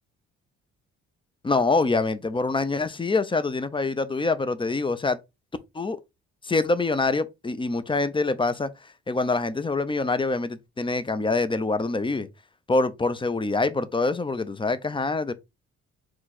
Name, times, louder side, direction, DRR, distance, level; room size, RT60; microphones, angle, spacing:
voice 1, 1.4-5.2 5.7-6.0 6.4-8.7 9.1-12.3 12.7-15.3, left 3 dB, 15° left, 0.5 m, -25 dB
4.6 x 2.4 x 4.0 m
cardioid pair, 90°, 30 cm